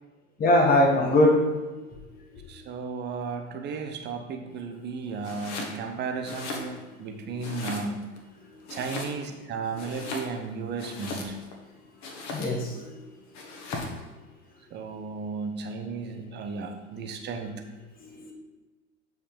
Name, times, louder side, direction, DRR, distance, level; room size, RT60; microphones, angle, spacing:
voice 1, 0.4-1.4 7.2-7.3 12.3-13.0 18.0-18.3, left 1 dB, 20° left, 1 dB, 1.6 m, -22 dB
voice 2, 2.5-8.0 8.7-11.4 14.7-17.6, right 4 dB, 25° right, 5 dB, 1.0 m, -34 dB
Domestic sounds home sounds, 5.2-5.8 6.2-7.0 7.4-8.2 8.6-9.4 9.7-11.6 12.0-12.7 13.3-14.0, left 3 dB, 35° left, 1.7 m, -38 dB
8.6 x 5.1 x 5.3 m, 1.3 s
figure-of-eight pair, 90°, 44 cm